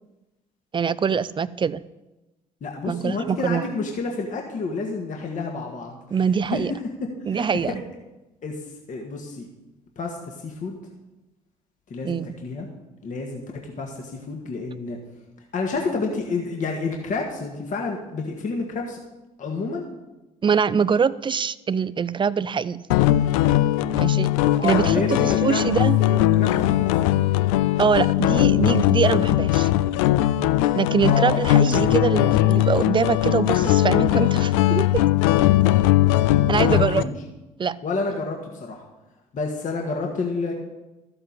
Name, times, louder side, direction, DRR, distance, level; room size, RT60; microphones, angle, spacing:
voice 1, 0.7-1.8 2.9-3.7 6.1-6.7 7.3-7.8 12.0-12.3 20.4-22.8 24.0-24.3 24.6-26.0 27.8-29.7 30.7-35.0 36.5-37.1 37.6-37.8, right 6 dB, 30° right, 18 dB, 0.5 m, -23 dB
voice 2, 2.6-6.0 6.5-6.9 7.3-7.7 8.4-8.6 8.9-9.5 10.0-10.8 11.9-12.7 13.0-15.0 15.5-19.0 19.4-19.9 24.6-27.2 31.0-31.4 36.5-37.1 37.8-38.8 39.3-40.5, left 4 dB, 45° left, 1 dB, 1.8 m, -29 dB
sound 1, 22.9-37.0, left 14 dB, 75° left, 0.5 m, -19 dB
13.5 x 7.8 x 4.1 m, 1.0 s
hypercardioid pair, 55°, 17 cm